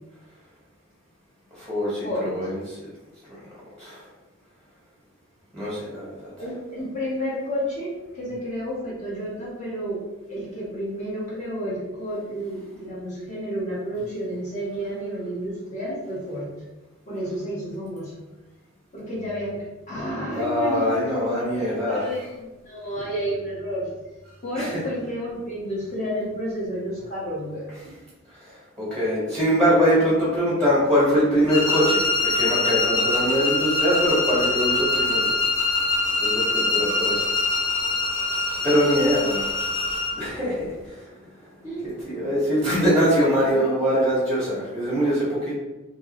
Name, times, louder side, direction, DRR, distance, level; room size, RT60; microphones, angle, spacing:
voice 1, 1.5-2.9 3.8-4.0 5.5-6.3 20.3-22.1 24.5-24.8 28.3-35.3 36.2-37.2 38.6-39.5 40.1-41.2 42.0-45.6, equal, 5° left, -9 dB, 1.4 m, -23 dB
voice 2, 2.0-2.5 6.4-10.0 10.3-16.5 17.1-18.1 18.9-23.9 24.4-27.9 36.4-37.1 41.6-42.0 43.4-43.6, equal, 35° left, -8 dB, 1.4 m, -31 dB
sound 1, 31.5-40.2, left 3 dB, 65° left, 1.2 m, -24 dB
3.6 x 3.0 x 3.0 m, 1.1 s
head